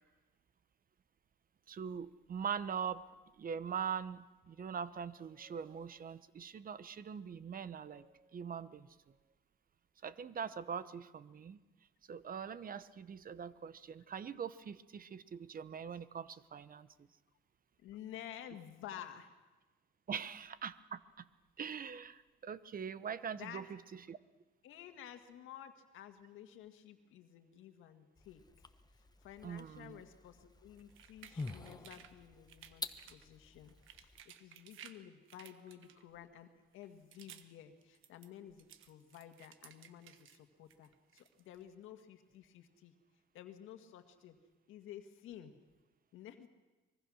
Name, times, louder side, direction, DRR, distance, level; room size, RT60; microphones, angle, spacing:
voice 1, 1.7-3.1 3.4-9.1 10.0-11.6 12.1-17.1 20.1-21.3 21.6-24.2 29.4-30.0, right 7 dB, 45° right, 15 dB, 1.0 m, -43 dB
voice 2, 17.8-19.4 23.3-23.7 24.6-28.7 29.2-42.9 43.3-44.4 44.7-45.6 46.1-46.5, left 10 dB, 90° left, 7 dB, 1.8 m, -52 dB
sound 1, 28.2-34.2, left 3 dB, 20° left, 1.1 m, -49 dB
sound 2, 30.8-32.1 32.5-33.3 33.6-35.0 35.3-36.2 36.7-37.5 37.8-40.4 40.7-41.6, right 10 dB, 85° right, 1.3 m, -57 dB
24.5 x 21.5 x 6.4 m, 1.2 s
cardioid pair, 90°, 20 cm